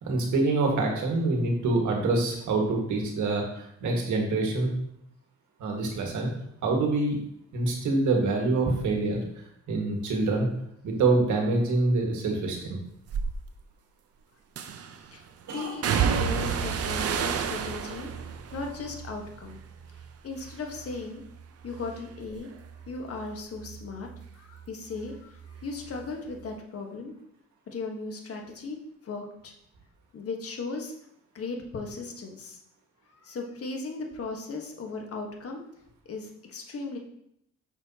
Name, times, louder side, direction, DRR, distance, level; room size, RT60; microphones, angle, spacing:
voice 1, 0.0-4.7 5.6-6.3 6.6-7.2 7.5-9.2 9.7-10.5 10.8-12.8 15.5-15.7, right 3 dB, 75° right, 1 dB, 1.7 m, -26 dB
sound 1, 13.1-13.3 14.6-15.0 15.8-20.1 20.4-21.0 21.4-24.7 24.9-26.1 26.3-26.5, right 7 dB, 55° right, 0.6 m, -31 dB
voice 2, 15.5-18.1 18.5-19.6 20.2-21.2 21.6-22.5 22.9-24.1 24.3-27.1 27.7-28.8 29.0-29.5 30.1-30.9 31.3-32.6 33.1-35.6 36.1-37.0, left 3 dB, 50° left, 2 dB, 1.3 m, -37 dB
6.7 x 5.7 x 2.8 m, 0.74 s
cardioid pair, 90°, 30 cm